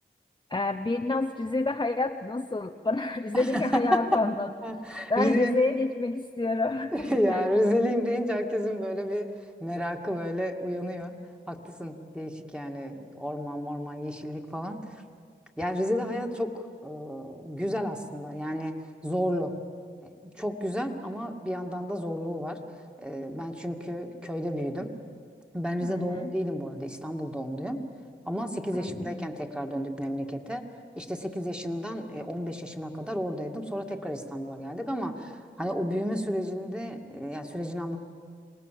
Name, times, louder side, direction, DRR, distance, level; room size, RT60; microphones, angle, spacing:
voice 1, 0.5-4.5 5.1-7.4 25.8-26.3 28.7-29.3, left 2 dB, 20° left, 4 dB, 0.8 m, -28 dB
voice 2, 3.3-4.0 4.6-5.5 6.9-9.3 9.6-11.1 11.5-14.8 15.6-16.5 16.8-18.7 19.0-19.5 20.0-22.6 23.0-24.9 25.5-27.8 28.3-30.6 31.0-38.0, equal, 5° right, 3 dB, 2.3 m, -31 dB
26.5 x 19.0 x 7.7 m, 2.1 s
cardioid pair, 40°, 21 cm